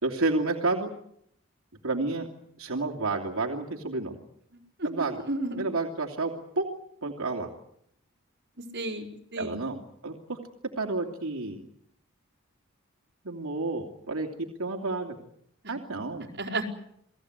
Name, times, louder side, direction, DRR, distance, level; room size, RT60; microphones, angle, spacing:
voice 1, 0.0-0.9 1.8-2.3 2.6-4.2 4.8-5.2 5.5-6.7 7.0-7.5 9.4-10.4 10.8-11.6 13.2-15.2 15.7-16.3, right 3 dB, 85° right, 2 dB, 2.9 m, -30 dB
voice 2, 8.7-9.6 16.4-16.7, right 2 dB, 55° right, 0 dB, 4.6 m, -32 dB
29.0 x 19.5 x 8.1 m, 0.73 s
head